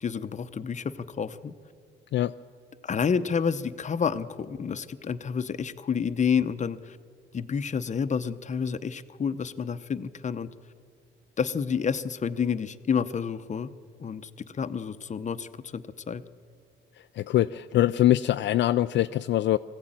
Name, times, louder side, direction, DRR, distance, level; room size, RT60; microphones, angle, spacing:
voice 1, 0.0-1.5 2.8-7.0 7.3-10.5 11.4-13.7 14.0-16.2, left 6 dB, 35° left, 12 dB, 0.8 m, -29 dB
voice 2, 17.2-19.6, left 13 dB, 65° left, 10 dB, 0.4 m, -23 dB
20.0 x 15.5 x 9.0 m, 2.2 s
cardioid pair, 90°, 20 cm